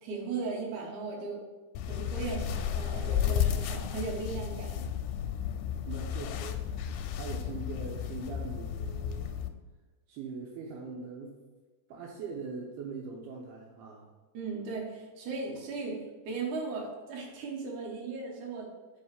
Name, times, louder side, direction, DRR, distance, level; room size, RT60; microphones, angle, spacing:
voice 1, 0.0-1.4 1.9-4.8 14.3-18.7, right 4 dB, 60° right, -2 dB, 2.6 m, -37 dB
sound 1, 1.8-9.5, left 9 dB, 85° left, 2.6 m, -33 dB
voice 2, 5.8-9.3 10.1-11.4 11.9-14.1, right 4 dB, 80° right, -1 dB, 2.6 m, -42 dB
5.5 x 5.4 x 6.6 m, 1.2 s
omnidirectional pair, 4.9 m